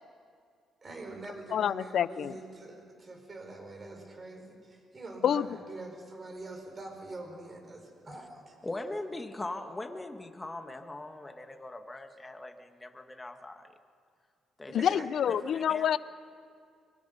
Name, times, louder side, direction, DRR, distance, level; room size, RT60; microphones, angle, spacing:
voice 1, 0.8-8.6 14.8-15.1, right 2 dB, 35° right, 2 dB, 5.3 m, -44 dB
voice 2, 1.5-2.4 5.2-5.5 14.7-16.0, left 9 dB, 65° left, 16 dB, 0.6 m, -27 dB
voice 3, 8.6-13.7 14.6-15.8, left 2 dB, 15° left, 6 dB, 1.5 m, -41 dB
24.0 x 22.0 x 5.6 m, 2.2 s
cardioid pair, 90°, 0 cm